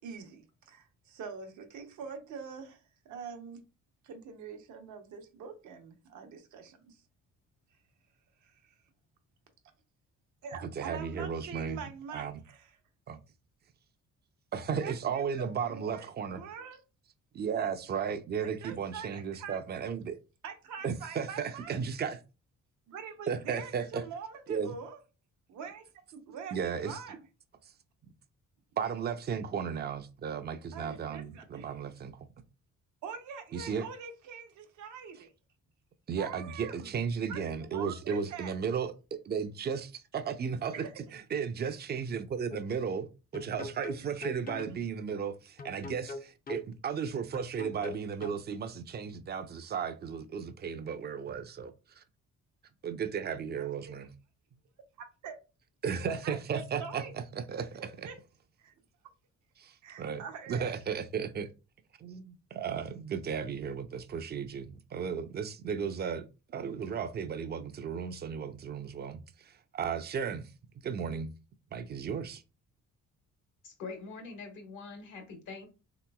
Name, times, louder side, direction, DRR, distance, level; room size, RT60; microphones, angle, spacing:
voice 1, 0.0-3.6 4.0-7.0 8.4-8.8 10.4-12.7 14.8-16.8 17.9-18.0 18.4-19.6 20.4-21.8 22.9-25.0 25.5-25.9 26.1-27.2 30.7-31.8 33.0-35.3 36.2-36.9 37.3-38.5 40.7-40.9 53.6-54.1 55.0-55.4 56.1-57.1 57.8-58.2 58.6-58.7 59.8-60.7, right 6 dB, 75° right, 0.8 m, -44 dB
voice 2, 10.6-11.8 12.1-12.4 13.1-13.2 14.5-16.4 17.3-20.2 20.8-22.2 23.3-24.1 24.5-24.7 26.5-27.0 27.6-27.7 28.8-32.3 33.5-33.9 36.1-43.1 43.3-52.0 52.8-54.1 55.8-58.1 59.6-61.5 62.0-70.5 70.8-71.3 71.7-72.4, right 6 dB, 35° right, 0.4 m, -35 dB
sound 1, 42.5-42.7 43.3-44.8 45.6-46.7 47.3-48.4, left 3 dB, 30° left, 0.5 m, -42 dB
voice 3, 73.6-75.7, left 4 dB, 75° left, 1.2 m, -44 dB
3.3 x 2.9 x 2.2 m
cardioid pair, 90°, 30 cm